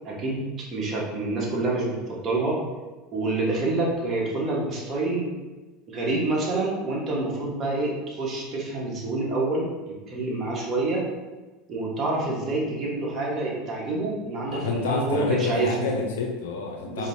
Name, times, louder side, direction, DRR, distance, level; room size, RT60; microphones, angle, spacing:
voice 1, 0.0-2.6 3.1-5.3 5.9-9.7 10.1-11.0 11.7-15.8 16.8-17.1, right 2 dB, 35° right, -4 dB, 1.3 m, -27 dB
voice 2, 14.4-17.1, left 4 dB, 80° left, 1 dB, 0.6 m, -28 dB
4.7 x 2.9 x 2.7 m, 1.2 s
hypercardioid pair, 90°, 0 cm